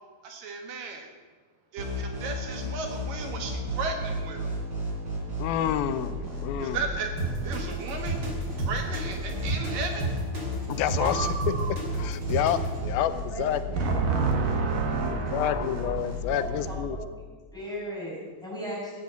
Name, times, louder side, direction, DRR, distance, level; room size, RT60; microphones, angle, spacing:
voice 1, 0.2-1.1 1.7-4.5 6.6-7.1 7.4-8.2 8.6-10.1 11.0-11.8 13.8-16.0, right 5 dB, 70° right, 4 dB, 3.1 m, -32 dB
sound 1, 1.8-16.7, right 1 dB, 50° right, 5.5 m, -34 dB
voice 2, 5.4-6.8 10.7-11.5 12.0-13.8 15.1-17.0, left 11 dB, 90° left, 12 dB, 2.6 m, -29 dB
sound 2, 7.2-12.8, right 3 dB, 30° right, 3.6 m, -31 dB
voice 3, 13.7-14.3 16.3-17.3 17.5-19.0, equal, ahead, -6 dB, 6.1 m, -37 dB
16.5 x 9.4 x 7.8 m, 1.4 s
omnidirectional pair, 4.2 m